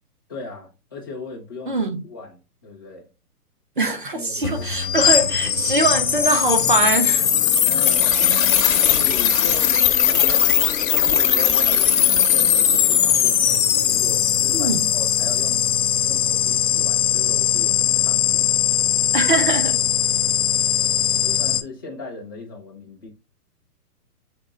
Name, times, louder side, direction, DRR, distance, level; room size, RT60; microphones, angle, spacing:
voice 1, 0.3-3.1 4.1-4.7 7.6-8.2 8.6-10.6 10.9-15.7 16.0-18.5 21.2-23.1, left 3 dB, 15° left, 0.6 m, -37 dB
voice 2, 1.7-2.0 3.8-7.3 14.5-14.9 19.1-19.8, right 2 dB, 35° right, 0.4 m, -22 dB
sound 1, 4.4-21.6, left 10 dB, 60° left, 0.6 m, -19 dB
3.6 x 3.6 x 3.0 m
hypercardioid pair, 175°, 47 cm